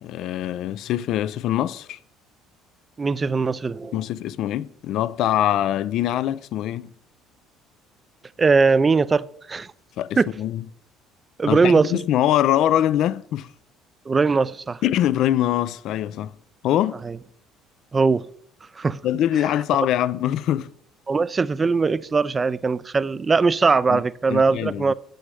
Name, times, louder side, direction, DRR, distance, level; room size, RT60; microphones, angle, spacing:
voice 1, 0.0-2.0 3.9-6.9 10.0-10.6 11.5-13.5 14.8-16.3 16.6-17.0 19.0-20.7 23.9-24.0 24.3-24.9, left 12 dB, 65° left, 0.5 m, -23 dB
voice 2, 3.0-4.0 8.4-9.7 10.2-10.3 11.4-11.9 14.1-14.8 17.0-17.2 17.9-18.3 18.8-19.0 21.1-24.9, right 4 dB, 25° right, 0.5 m, -20 dB
8.3 x 6.5 x 7.7 m
supercardioid pair, 95°, 0 cm